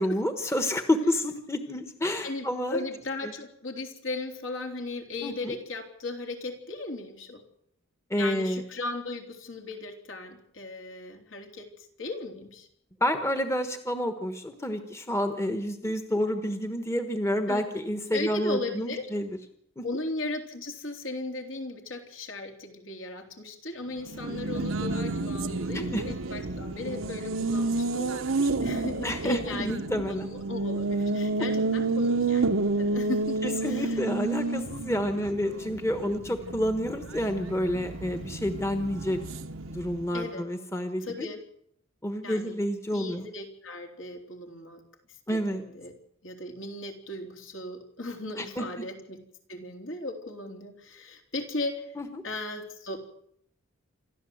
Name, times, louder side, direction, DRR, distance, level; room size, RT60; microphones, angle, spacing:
voice 1, 0.0-2.8 5.2-5.5 8.1-8.6 13.0-19.3 19.8-19.9 25.7-26.0 29.0-30.3 33.4-39.2 39.7-41.3 42.0-43.3 45.3-45.6 48.4-48.6 52.0-52.2, equal, 15° left, 7 dB, 1.3 m, -29 dB
voice 2, 2.2-7.4 8.2-12.7 17.5-17.6 18.1-19.1 19.8-34.0 40.1-40.5 41.0-41.4 42.2-42.6 42.9-44.8 45.3-45.9 46.2-49.2 49.5-51.9 52.2-53.0, left 2 dB, 70° left, 2 dB, 3.6 m, -37 dB
Race car auto racing, 24.0-40.2, right 3 dB, 80° right, 1.1 m, -30 dB
27.0 x 12.5 x 7.9 m, 0.70 s
head